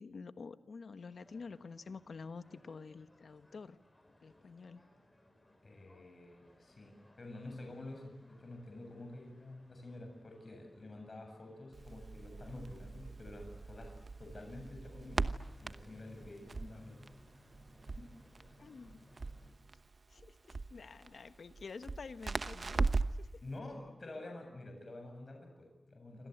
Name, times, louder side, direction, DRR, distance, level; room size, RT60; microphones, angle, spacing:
voice 1, 0.0-3.8 4.2-4.9 18.6-19.1 20.1-22.9 23.2-23.4, left 4 dB, 70° left, 11 dB, 1.2 m, -49 dB
sound 1, 1.1-19.5, left 1 dB, 15° left, 7.8 m, -64 dB
voice 2, 5.6-13.9 14.2-15.3 15.6-17.0 18.0-18.1 23.4-26.3, left 2 dB, 40° left, 3 dB, 7.8 m, -49 dB
Crackle, 11.7-23.3, right 3 dB, 45° right, 1.0 m, -39 dB
28.0 x 26.5 x 8.1 m, 1.1 s
wide cardioid pair, 140°, 0 cm